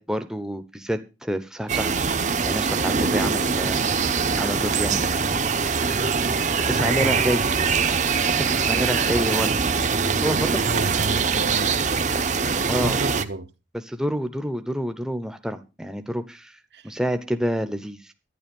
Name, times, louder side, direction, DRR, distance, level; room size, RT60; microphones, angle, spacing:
voice 1, 0.0-3.8 4.4-5.0 6.7-7.4 8.3-9.7 10.2-10.6 12.7-13.0 13.9-16.6 16.8-18.1, equal, 5° right, 0.8 m, -28 dB
sound 1, 1.7-13.2, right 5 dB, 40° right, 0.8 m, -23 dB
voice 2, 6.7-7.8 10.6-12.2 12.7-13.5 16.7-16.9, right 2 dB, 60° right, 1.0 m, -32 dB
11.5 x 10.5 x 5.3 m
head